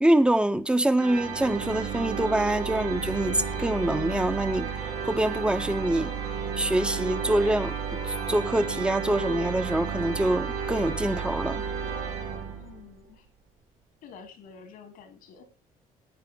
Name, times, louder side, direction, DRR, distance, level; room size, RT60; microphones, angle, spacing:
voice 1, 0.0-4.7 5.0-6.1 6.6-11.6, right 1 dB, 5° right, 1.1 m, -25 dB
sound 1, 1.0-12.9, right 6 dB, 90° right, 3.0 m, -32 dB
voice 2, 12.6-13.3 14.0-15.5, left 6 dB, 85° left, 3.5 m, -48 dB
17.0 x 9.0 x 3.8 m
cardioid pair, 85°, 14 cm